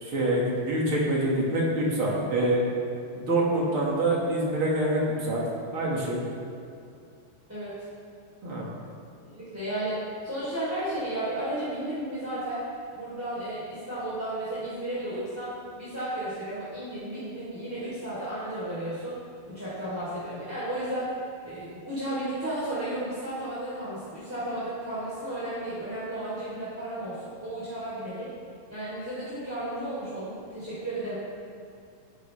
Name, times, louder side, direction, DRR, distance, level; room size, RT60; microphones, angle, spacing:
voice 1, 0.0-2.6 3.1-5.4 5.7-6.2 8.4-8.7, right 1 dB, 45° right, -5 dB, 1.8 m, -26 dB
voice 2, 7.5-7.8 9.2-12.6 12.9-19.2 19.5-21.1 21.4-28.3 28.7-31.1, right 1 dB, 5° right, -11 dB, 2.7 m, -33 dB
20.5 x 11.0 x 3.5 m, 2.5 s
omnidirectional pair, 5.6 m